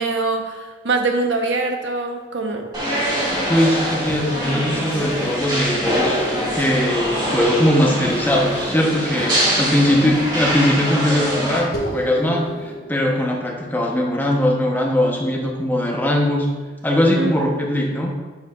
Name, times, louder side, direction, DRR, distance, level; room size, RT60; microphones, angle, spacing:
voice 1, 0.0-2.7 17.2-17.3, right 3 dB, 80° right, 3 dB, 0.8 m, -23 dB
sound 1, 2.7-11.6, equal, 25° right, 1.9 m, -23 dB
voice 2, 3.5-6.3 6.5-16.5 16.8-18.1, left 1 dB, 10° left, 0 dB, 0.7 m, -20 dB
sound 2, 11.7-16.5, right 1 dB, 55° left, 1.1 m, -34 dB
7.7 x 6.5 x 2.4 m, 1.3 s
head